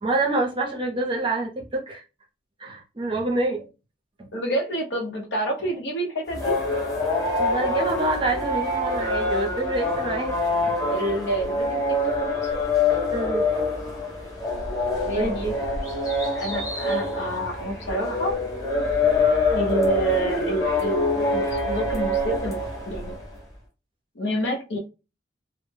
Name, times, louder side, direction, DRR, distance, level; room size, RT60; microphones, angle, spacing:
voice 1, 0.0-2.0 2.6-3.6 4.2-4.3 7.4-10.3 10.7-10.8 13.1-13.5 15.1-15.5, right 2 dB, 25° right, 1 dB, 0.6 m, -26 dB
voice 2, 4.3-6.6 10.9-12.6 15.0-15.5 16.3-18.4 19.5-23.2 24.1-24.8, right 1 dB, 75° left, 2 dB, 0.7 m, -28 dB
sound 1, 6.3-23.3, left 2 dB, 20° left, 0.7 m, -25 dB
2.1 x 2.0 x 3.2 m, 0.30 s
head